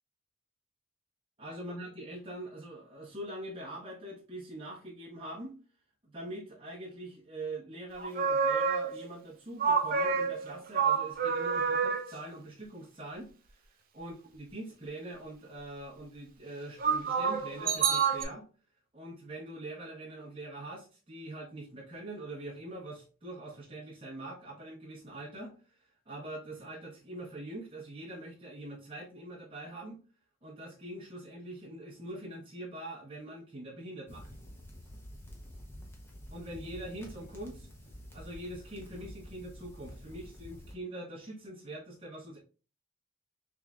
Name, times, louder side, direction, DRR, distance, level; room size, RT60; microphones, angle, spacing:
voice 1, 1.4-5.6 6.1-13.6 13.9-18.4 18.9-30.0 30.4-34.3 36.3-37.7 38.1-42.4, right 1 dB, 25° right, -6 dB, 0.9 m, -43 dB
sound 1, 8.0-9.1 9.6-12.1 16.8-18.2, right 6 dB, 40° right, 0.4 m, -28 dB
sound 2, 34.1-40.7, equal, 10° left, 0.6 m, -48 dB
3.6 x 3.1 x 2.4 m, 0.36 s
head